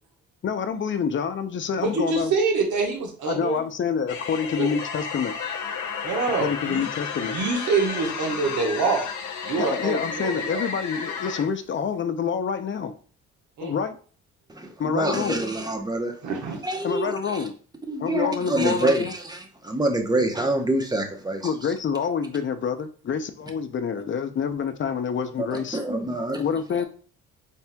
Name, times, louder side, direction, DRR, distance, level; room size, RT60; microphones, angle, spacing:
voice 1, 0.4-2.3 3.3-5.3 6.4-7.3 9.6-12.9 13.6-14.0 14.8-15.4 16.8-17.5 18.0-19.1 21.4-25.8 26.4-26.8, left 6 dB, 40° left, 0.6 m, -27 dB
voice 2, 1.8-3.6 4.6-4.7 6.0-6.8 7.2-9.0 9.4-10.7 13.6-13.7 16.2-16.6, right 4 dB, 75° right, 1.3 m, -25 dB
sound 1, 4.1-11.5, left 6 dB, 75° left, 0.8 m, -32 dB
voice 3, 14.5-16.1 16.6-17.5 17.9-21.5 25.4-26.4, right 1 dB, 15° right, 0.9 m, -26 dB
4.2 x 3.4 x 2.3 m
cardioid pair, 90°, 30 cm